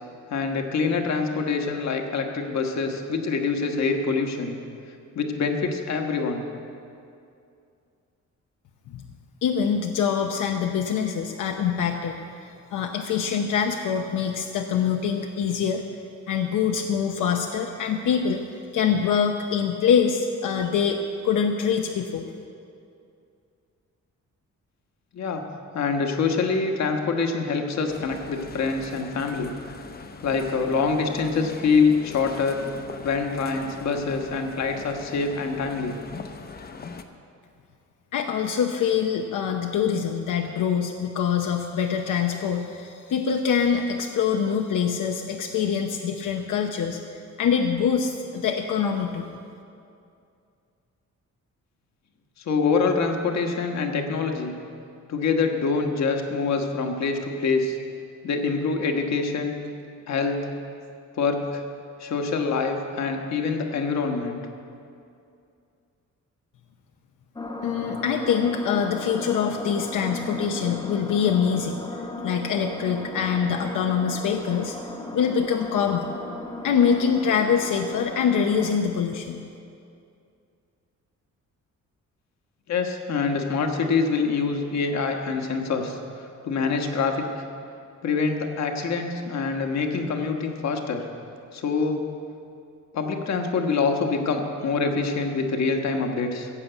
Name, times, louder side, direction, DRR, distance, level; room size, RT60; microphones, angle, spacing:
voice 1, 0.3-4.6 5.1-6.4 25.1-25.4 25.7-29.5 30.2-32.6 33.0-35.9 52.5-54.6 55.1-57.8 58.2-59.5 60.1-60.4 61.2-61.6 62.0-64.4 82.7-86.0 86.4-87.2 88.0-91.0 91.5-92.0 92.9-96.5, left 4 dB, 60° left, 4 dB, 1.3 m, -25 dB
voice 2, 9.4-15.8 16.3-21.0 21.2-22.3 38.1-49.3 67.6-71.8 72.2-74.8 75.1-76.2 76.6-79.4, left 7 dB, 85° left, 3 dB, 0.8 m, -24 dB
sound 1, 27.9-37.0, left 5 dB, 30° left, 0.6 m, -41 dB
sound 2, 67.4-78.8, left 2 dB, 15° left, 1.0 m, -36 dB
16.0 x 7.4 x 8.0 m, 2.5 s
wide cardioid pair, 180°, 30 cm